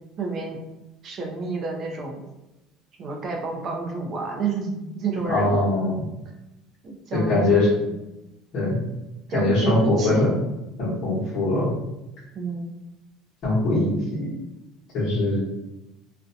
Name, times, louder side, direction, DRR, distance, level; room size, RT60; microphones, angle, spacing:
voice 1, 0.2-0.6 1.0-2.2 3.0-5.8 6.8-7.9 9.3-10.3 12.3-12.7, right 4 dB, 30° right, 1 dB, 0.4 m, -30 dB
voice 2, 5.3-6.0 7.1-7.7 8.5-8.8 9.3-10.3 10.8-11.7 13.4-14.3 14.9-15.4, left 2 dB, 45° left, -10 dB, 0.9 m, -22 dB
2.4 x 2.1 x 2.6 m, 0.95 s
cardioid pair, 180°, 0 cm